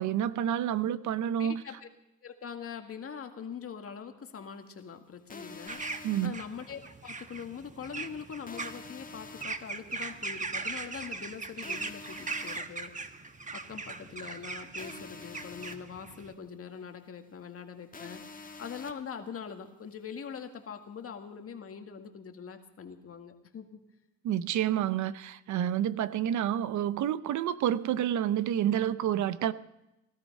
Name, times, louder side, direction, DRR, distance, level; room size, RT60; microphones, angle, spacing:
voice 1, 0.0-1.6 6.0-6.3 24.2-29.5, right 10 dB, 75° right, 0.7 m, -29 dB
voice 2, 1.4-1.9 2.2-12.9 13.5-23.8, left 7 dB, 50° left, 1.9 m, -43 dB
sound 1, 5.3-6.3 8.5-9.4 11.6-12.6 14.8-15.8 17.9-18.9, left 4 dB, 25° left, 1.7 m, -46 dB
sound 2, 5.7-16.3, right 4 dB, 25° right, 1.1 m, -40 dB
17.5 x 12.5 x 5.4 m
cardioid pair, 90°, 30 cm